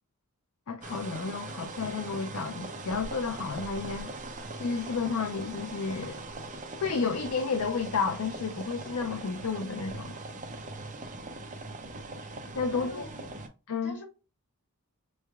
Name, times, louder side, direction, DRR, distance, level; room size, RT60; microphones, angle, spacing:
voice 1, 0.7-4.1 4.6-6.2 6.8-10.1 12.5-13.1 13.7-14.0, left 5 dB, 70° left, 0.5 m, -31 dB
sound 1, 0.8-13.5, right 2 dB, 35° right, 0.6 m, -41 dB
voice 2, 12.7-13.3 13.8-14.0, left 2 dB, 55° left, 1.9 m, -44 dB
5.5 x 3.2 x 2.3 m
head